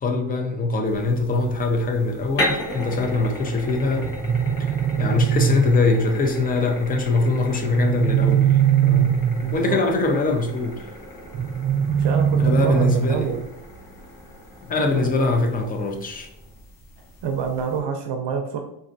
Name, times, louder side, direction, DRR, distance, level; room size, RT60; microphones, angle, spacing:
voice 1, 0.0-4.1 4.6-4.7 5.0-9.1 9.5-10.9 12.4-13.3 14.7-16.3, left 3 dB, 25° left, 0.3 m, -22 dB
sound 1, 0.9-17.8, left 1 dB, 55° left, 1.1 m, -36 dB
sound 2, 4.0-6.0 7.6-9.7 11.3-13.3, right 9 dB, 35° right, 0.5 m, -21 dB
voice 2, 9.0-9.8 11.9-13.4 14.9-15.1 17.2-18.6, right 6 dB, 75° right, 0.5 m, -27 dB
4.0 x 2.6 x 2.5 m
cardioid pair, 165°, 42 cm